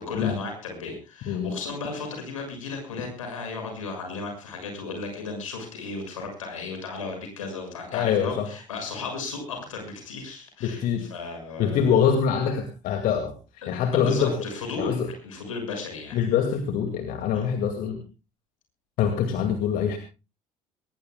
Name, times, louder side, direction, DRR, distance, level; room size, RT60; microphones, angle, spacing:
voice 1, 0.0-12.0 13.6-16.2 17.3-17.5, left 4 dB, 80° left, 4 dB, 6.3 m, -35 dB
voice 2, 7.9-8.5 10.6-11.1 11.6-13.4 13.7-14.4 14.8-15.1 16.1-18.0 19.0-20.0, left 7 dB, 55° left, 5 dB, 2.3 m, -24 dB
22.5 x 19.5 x 2.3 m, 0.32 s
figure-of-eight pair, 60°, 17 cm